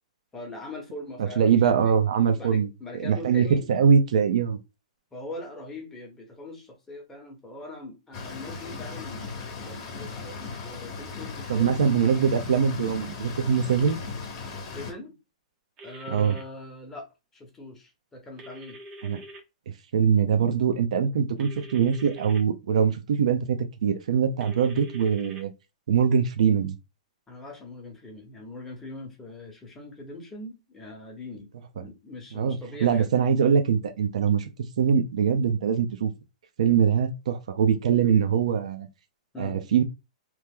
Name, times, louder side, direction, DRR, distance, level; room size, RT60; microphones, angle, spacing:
voice 1, 0.3-2.0 2.4-3.7 5.1-11.7 13.2-13.4 14.7-15.1 15.8-17.1 17.3-18.8 27.3-31.5 31.8-33.1 39.3-39.6, left 2 dB, 10° left, 0.9 m, -41 dB
voice 2, 1.2-2.7 2.9-4.6 11.5-14.0 16.1-16.4 19.0-19.2 19.9-25.5 25.9-26.7 32.3-34.5 34.8-36.1 36.6-38.9 39.4-39.8, right 7 dB, 75° right, 0.6 m, -23 dB
sound 1, 8.1-14.9, left 4 dB, 35° left, 0.9 m, -37 dB
sound 2, 15.8-16.4 18.4-19.4 21.4-22.4 24.4-25.4, equal, 25° right, 0.6 m, -44 dB
3.0 x 2.0 x 3.5 m
hypercardioid pair, 160°, 4 cm